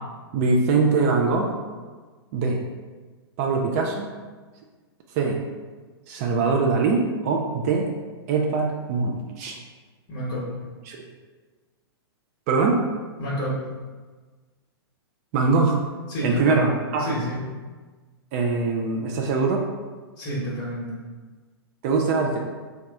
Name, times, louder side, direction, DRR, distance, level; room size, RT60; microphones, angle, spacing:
voice 1, 0.3-1.6 2.3-2.6 3.4-4.1 5.1-5.4 6.1-7.9 8.3-9.6 10.9-11.0 12.5-12.8 15.3-15.8 16.2-17.1 18.3-19.6 21.8-22.4, right 4 dB, 40° right, 1 dB, 0.4 m, -22 dB
voice 2, 10.1-10.5 13.2-13.6 16.1-16.6 17.0-17.4 20.2-20.9, equal, 40° left, -7 dB, 1.0 m, -29 dB
2.9 x 2.3 x 3.4 m, 1.4 s
hypercardioid pair, 115°, 13 cm